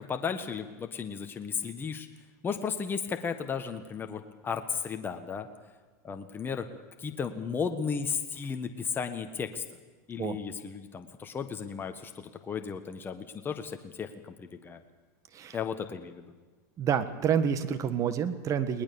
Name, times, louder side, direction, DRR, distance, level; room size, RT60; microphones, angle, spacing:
voice 1, 0.0-2.1 2.4-5.5 6.0-6.7 7.0-9.6 10.1-14.8 15.5-16.2, left 6 dB, 25° left, 6 dB, 1.4 m, -34 dB
voice 2, 16.8-18.8, right 8 dB, 35° right, 12 dB, 1.5 m, -28 dB
20.5 x 19.5 x 7.0 m, 1.3 s
supercardioid pair, 110°, 9 cm